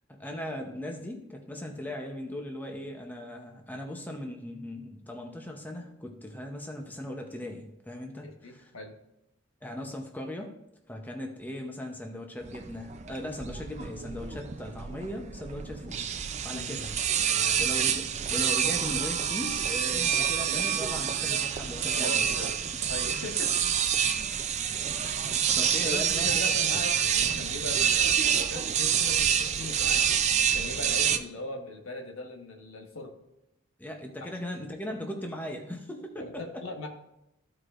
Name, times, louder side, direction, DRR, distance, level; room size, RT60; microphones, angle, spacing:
voice 1, 0.1-8.7 9.6-10.5 10.9-16.1 16.4-16.9 17.6-18.0 18.3-22.5 25.0-26.5 33.8-36.6, left 1 dB, 10° left, 2 dB, 0.7 m, -38 dB
voice 2, 8.2-8.9 16.5-16.8 17.3-17.6 21.9-22.6 22.9-23.7 24.0-24.1 25.8-30.0 30.5-33.1 34.2-34.3 36.2-36.9, left 2 dB, 75° left, 3 dB, 1.3 m, -40 dB
sound 1, 12.4-31.2, right 8 dB, 35° right, 0.4 m, -27 dB
14.0 x 4.8 x 2.5 m, 0.88 s
head